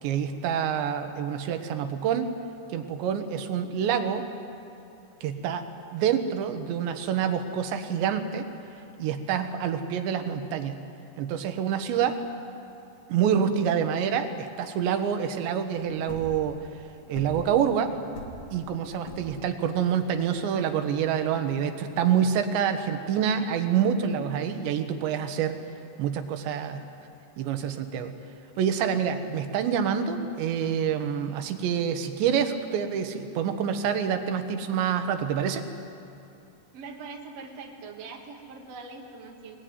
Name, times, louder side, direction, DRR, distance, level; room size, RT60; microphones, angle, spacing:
voice 1, 0.0-2.3 2.7-4.2 5.2-5.7 5.9-8.5 9.0-10.8 11.2-12.2 13.1-16.6 17.1-17.9 18.5-25.6 26.0-26.8 27.4-28.2 28.6-35.6, right 8 dB, 80° right, 7 dB, 3.6 m, -27 dB
sound 1, 15.9-21.7, left 1 dB, 40° left, 2.4 m, -43 dB
voice 2, 36.7-39.6, right 4 dB, 50° right, 0 dB, 2.3 m, -42 dB
22.5 x 20.5 x 9.5 m, 2.7 s
omnidirectional pair, 5.0 m